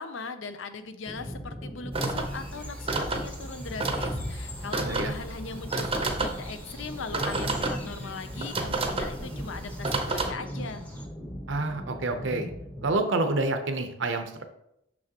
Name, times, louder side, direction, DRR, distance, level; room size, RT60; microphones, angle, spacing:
voice 1, 0.0-10.8, left 4 dB, 70° left, 10 dB, 0.5 m, -39 dB
sound 1, 1.1-12.9, equal, 25° left, 1.1 m, -41 dB
sound 2, 1.9-10.3, right 3 dB, 30° right, 0.7 m, -31 dB
sound 3, 2.2-11.1, equal, 10° left, 0.8 m, -42 dB
voice 2, 11.5-12.5 12.8-14.4, right 2 dB, 65° right, 7 dB, 0.7 m, -28 dB
6.2 x 5.9 x 2.9 m, 0.80 s
head